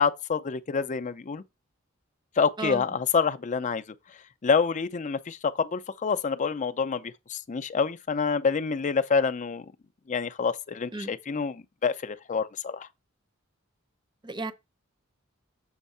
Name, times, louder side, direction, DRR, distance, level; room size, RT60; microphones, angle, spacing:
voice 1, 0.0-1.4 2.4-3.8 4.4-9.7 10.1-12.9, left 5 dB, 35° left, 0.5 m, -27 dB
voice 2, 2.6-2.8 10.9-11.2 14.2-14.5, right 2 dB, 20° right, 0.6 m, -33 dB
7.2 x 3.4 x 5.5 m
head